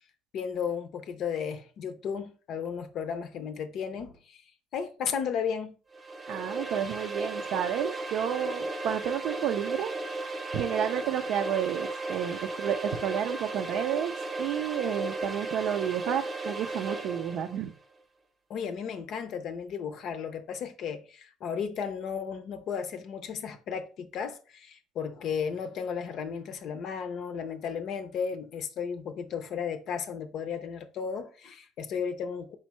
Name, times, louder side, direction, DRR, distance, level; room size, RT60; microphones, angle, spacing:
voice 1, 0.3-4.4 4.7-5.8 18.5-32.6, left 7 dB, 55° left, 0.6 m, -34 dB
sound 1, 5.9-17.6, right 2 dB, 20° right, 0.8 m, -35 dB
voice 2, 6.3-9.9 10.5-14.1 14.4-17.8, right 10 dB, 65° right, 0.4 m, -31 dB
4.3 x 3.6 x 3.1 m
cardioid pair, 130°, 0 cm